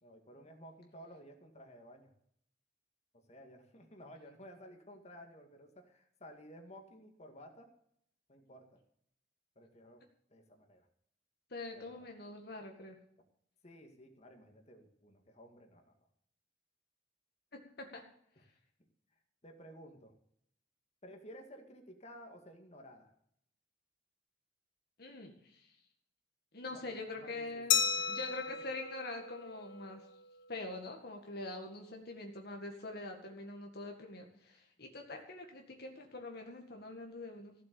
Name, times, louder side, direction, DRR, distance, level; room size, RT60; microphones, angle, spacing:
voice 1, 0.0-2.1 3.3-7.7 8.3-8.8 9.6-10.0 10.3-10.9 11.7-11.9 13.6-15.9 19.4-20.1 21.0-23.1 26.7-27.8, equal, 35° left, 4 dB, 2.1 m, -54 dB
voice 2, 11.5-13.0 17.8-18.0 25.0-25.7 26.5-30.1 30.5-37.5, left 2 dB, 60° left, 3 dB, 1.9 m, -44 dB
Glass, 27.7-30.2, left 7 dB, 80° left, 0.9 m, -34 dB
15.0 x 7.6 x 7.0 m, 0.69 s
head